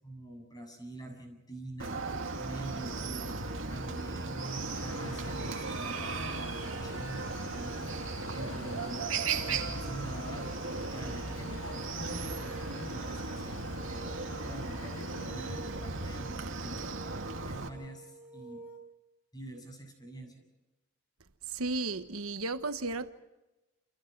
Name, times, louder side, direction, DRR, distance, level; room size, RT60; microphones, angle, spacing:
voice 1, 0.0-10.6 10.9-16.8 17.4-18.6 19.3-20.4, right 2 dB, 20° left, 7.5 m, -45 dB
Chicken rooster, 1.8-17.7, right 3 dB, 65° right, 2.6 m, -36 dB
sound 1, 2.7-18.8, right 2 dB, 5° right, 5.2 m, -50 dB
sound 2, 4.4-15.6, left 4 dB, 80° left, 1.5 m, -50 dB
voice 2, 21.5-23.1, right 3 dB, 80° right, 1.3 m, -34 dB
29.0 x 28.0 x 4.7 m
head